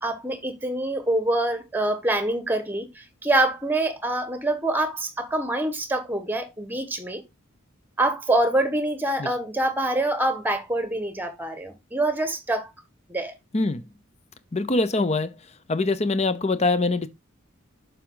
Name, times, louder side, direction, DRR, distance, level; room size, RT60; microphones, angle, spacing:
voice 1, 0.0-7.2 8.0-12.7 13.1-13.3, right 1 dB, 10° right, 1.4 m, -25 dB
voice 2, 13.5-13.8 14.5-15.4 15.7-17.1, left 3 dB, 30° left, 0.7 m, -23 dB
7.2 x 5.0 x 3.9 m
head